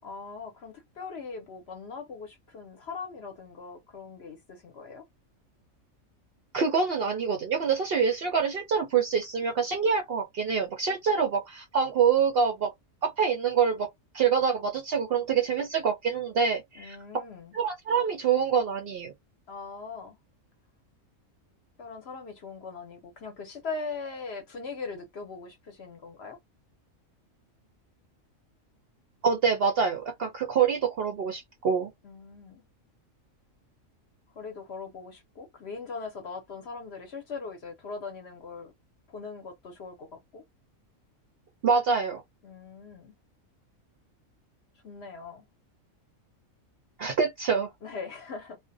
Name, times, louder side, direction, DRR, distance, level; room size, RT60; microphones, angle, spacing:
voice 1, 0.0-5.1 16.8-17.5 19.5-20.2 21.8-26.4 32.0-32.6 34.3-38.7 39.1-40.4 42.4-43.1 44.8-45.4 47.8-48.6, left 4 dB, 60° left, 0.8 m, -40 dB
voice 2, 6.5-12.7 13.0-13.9 14.1-17.0 17.5-19.1 29.2-31.9 41.6-42.2 47.0-47.7, right 6 dB, 65° right, 0.6 m, -26 dB
2.4 x 2.1 x 2.5 m
omnidirectional pair, 1.4 m